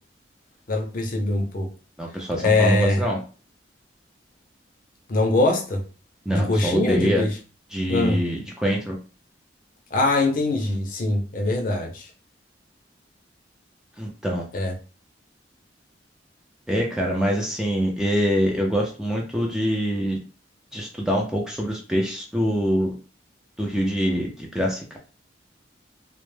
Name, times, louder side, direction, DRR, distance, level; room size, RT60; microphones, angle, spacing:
voice 1, 0.7-1.7 2.4-3.0 5.1-5.8 6.3-7.3 7.9-8.2 9.9-12.1 14.5-14.7, left 2 dB, 45° left, 0.5 m, -22 dB
voice 2, 2.0-3.2 6.3-7.2 7.7-9.0 14.0-14.4 16.7-20.2 20.7-22.9 23.6-25.0, equal, 5° right, 0.4 m, -24 dB
2.1 x 2.0 x 3.1 m
head